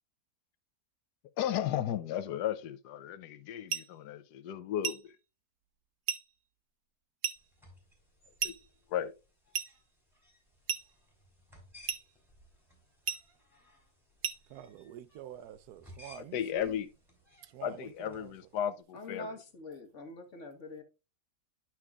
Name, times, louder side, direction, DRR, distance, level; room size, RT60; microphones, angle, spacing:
voice 1, 1.4-5.1 8.4-8.5 8.9-9.1 16.2-16.9 17.6-19.2, left 10 dB, 85° left, 1.2 m, -34 dB
sound 1, 3.7-3.9 4.8-5.1 6.1-6.3 7.2-7.5 8.4-8.7 9.5-9.8 10.7-10.9 11.9-12.1 13.1-13.3 14.2-14.5, right 7 dB, 55° right, 0.9 m, -35 dB
sound 2, 7.4-18.7, left 1 dB, ahead, 3.3 m, -60 dB
voice 2, 14.5-16.8 17.4-18.3, right 11 dB, 75° right, 1.1 m, -47 dB
voice 3, 18.9-20.8, left 2 dB, 50° left, 1.5 m, -44 dB
11.0 x 5.9 x 2.3 m
omnidirectional pair, 1.7 m